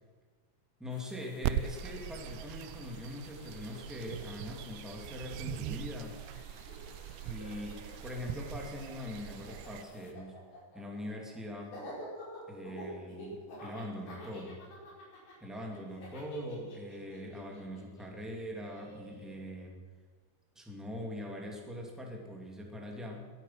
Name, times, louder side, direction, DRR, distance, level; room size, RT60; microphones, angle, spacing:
voice 1, 0.8-6.2 7.3-10.4 10.7-11.8 12.5-14.6 15.4-19.8 20.5-23.3, left 1 dB, ahead, 0 dB, 1.9 m, -42 dB
sound 1, 0.9-10.1, left 5 dB, 60° left, 1.5 m, -59 dB
sound 2, 1.4-9.8, right 13 dB, 85° right, 2.4 m, -41 dB
Laughter, 3.7-6.0 6.3-19.3, left 1 dB, 80° left, 6.6 m, -49 dB
22.0 x 9.1 x 5.9 m, 1.5 s
omnidirectional pair, 4.3 m